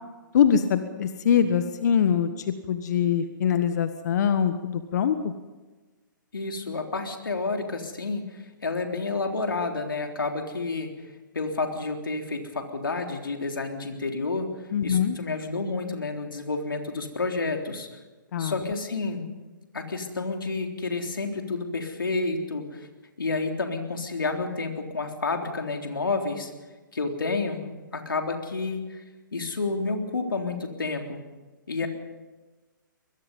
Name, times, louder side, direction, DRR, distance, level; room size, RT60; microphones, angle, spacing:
voice 1, 0.3-2.3 2.7-5.3 14.7-15.2 18.3-18.5, left 8 dB, 55° left, 10 dB, 1.4 m, -23 dB
voice 2, 6.3-10.9 11.3-14.5 14.8-17.9 18.4-19.3 19.7-22.9 23.2-26.5 26.9-27.7 27.9-29.0 29.3-31.2 31.7-31.9, left 3 dB, 85° left, 3 dB, 3.6 m, -30 dB
24.0 x 21.0 x 5.5 m, 1.2 s
hypercardioid pair, 135°, 11 cm